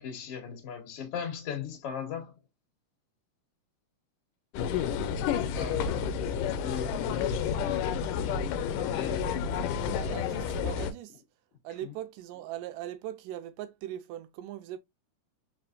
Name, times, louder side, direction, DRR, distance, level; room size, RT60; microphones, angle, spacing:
voice 1, 0.0-2.3 5.5-7.6 8.6-9.5 11.8-11.9, left 7 dB, 50° left, 2.2 m, -39 dB
sound 1, 4.5-10.9, left 7 dB, 85° left, 2.2 m, -30 dB
voice 2, 9.9-11.2 11.6-14.8, right 12 dB, 85° right, 2.2 m, -40 dB
4.8 x 4.3 x 2.4 m
omnidirectional pair, 3.8 m